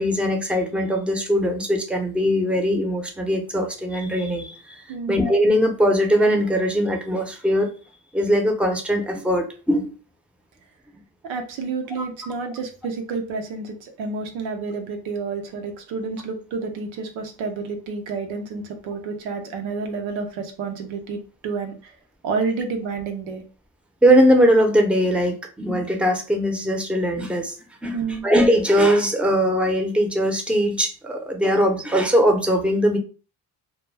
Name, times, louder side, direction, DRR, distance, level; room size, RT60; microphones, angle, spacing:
voice 1, 0.0-4.8 5.1-7.7 8.1-9.9 24.0-27.6 27.8-28.0 28.2-33.0, equal, 5° right, 4 dB, 0.6 m, -20 dB
voice 2, 11.2-22.0 22.2-23.4 27.9-28.3, right 4 dB, 90° right, 4 dB, 0.6 m, -29 dB
2.2 x 2.1 x 3.2 m, 0.35 s
supercardioid pair, 50°, 46 cm